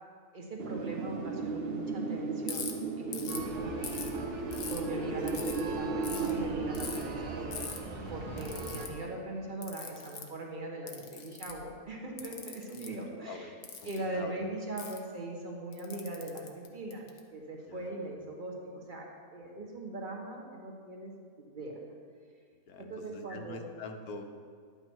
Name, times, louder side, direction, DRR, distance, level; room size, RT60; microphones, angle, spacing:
voice 1, 0.3-2.7 3.0-4.3 4.7-7.6 8.1-13.5 13.8-17.0 17.3-21.1 21.4-21.8 22.8-23.6, right 2 dB, 30° right, 0 dB, 1.6 m, -40 dB
Wind, 0.6-9.3, right 4 dB, 50° right, 0.8 m, -36 dB
Ratchet pawl, 2.5-2.7 3.1-3.4 3.8-4.8 5.3-5.6 6.0-6.3 6.7-7.0 7.5-7.8 8.4-8.9 9.6-10.3 10.9-11.6 12.2-12.9 13.6-14.0 14.8-15.0 15.7-17.2, left 6 dB, 90° left, 1.6 m, -41 dB
sound 1, 3.3-8.9, right 2 dB, 80° right, 1.7 m, -41 dB
voice 2, 13.1-13.5 13.8-14.4 17.7-18.1 19.4-19.6 22.7-24.4, left 3 dB, 70° left, 5 dB, 1.4 m, -45 dB
11.0 x 8.7 x 4.6 m, 2.1 s
omnidirectional pair, 1.7 m